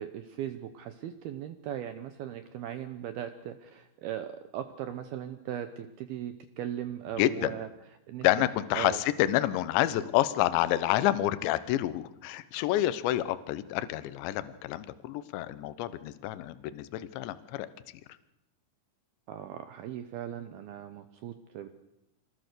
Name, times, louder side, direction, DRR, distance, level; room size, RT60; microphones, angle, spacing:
voice 1, 0.0-7.7 8.1-8.3 8.8-9.0 19.3-21.7, right 10 dB, 85° right, 9 dB, 2.2 m, -38 dB
voice 2, 7.2-7.6 8.2-17.7, left 14 dB, 75° left, 14 dB, 3.0 m, -28 dB
26.5 x 19.5 x 6.8 m, 0.90 s
omnidirectional pair, 5.7 m